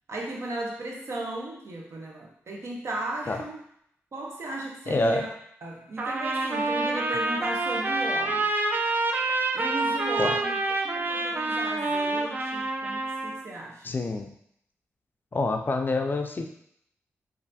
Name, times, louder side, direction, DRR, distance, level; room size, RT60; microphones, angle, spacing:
voice 1, 0.1-3.6 4.1-5.3 5.6-8.5 9.5-10.5 10.8-13.9, right 2 dB, 60° right, -1 dB, 0.7 m, -35 dB
voice 2, 4.9-5.2 10.2-10.3 13.8-14.3 15.3-16.4, left 2 dB, 40° left, 5 dB, 0.4 m, -27 dB
Trumpet, 6.0-13.4, right 2 dB, 35° right, 0.4 m, -27 dB
3.2 x 2.5 x 2.6 m, 0.69 s
cardioid pair, 55°, 5 cm